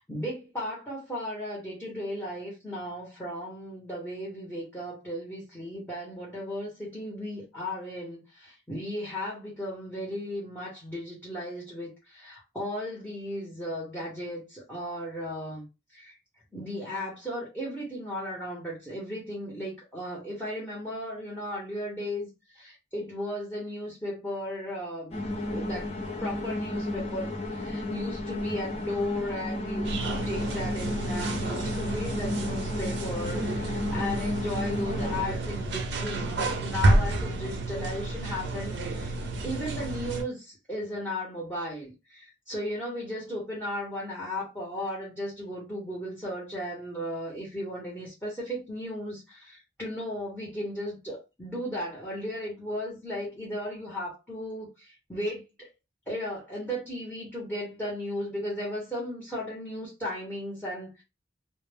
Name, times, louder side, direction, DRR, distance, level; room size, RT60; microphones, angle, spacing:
voice 1, 0.0-15.7 15.9-16.2 16.5-22.3 22.5-25.9 26.2-39.1 39.4-55.7 56.1-61.0, left 1 dB, 10° left, 0.8 m, -35 dB
sound 1, 25.1-35.2, left 1 dB, 35° left, 0.5 m, -33 dB
sound 2, 29.8-40.2, right 2 dB, 70° right, 0.5 m, -30 dB
2.1 x 2.0 x 3.3 m
head